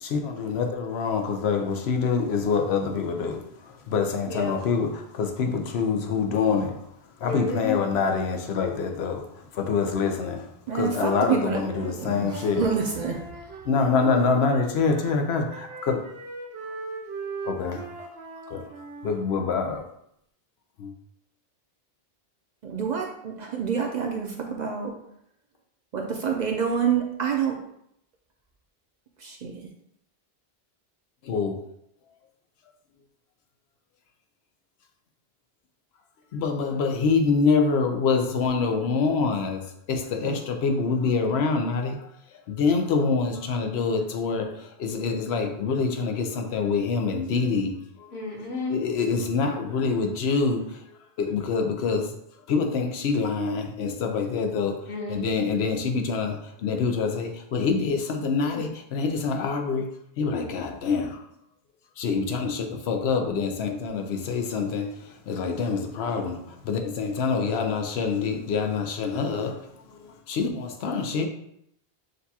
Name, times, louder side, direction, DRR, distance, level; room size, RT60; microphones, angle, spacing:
voice 1, 0.0-3.4 3.9-6.8 7.2-9.2 9.5-10.4 10.7-12.6 13.7-16.0 17.4-17.9 18.5-18.6 19.0-19.8 20.8-20.9 31.2-31.5 36.3-39.6 39.9-42.0 42.5-47.8 48.7-50.6 51.2-52.1 52.5-54.8 55.1-59.9 60.2-61.2 62.0-64.9 65.3-69.6 70.3-71.3, left 5 dB, 90° left, 4 dB, 0.9 m, -25 dB
voice 2, 4.3-4.6 7.2-7.8 48.1-48.8 54.8-55.5, left 3 dB, 65° left, 0 dB, 1.1 m, -31 dB
voice 3, 10.7-11.6 11.9-13.2 22.6-24.9 25.9-27.6 29.2-29.5 40.2-40.4, right 7 dB, 55° right, 1 dB, 0.5 m, -27 dB
Wind instrument woodwind instrument, 11.5-15.2 15.5-19.9, right 3 dB, 85° right, 0.9 m, -40 dB
6.4 x 2.3 x 2.8 m, 0.74 s
omnidirectional pair, 1.0 m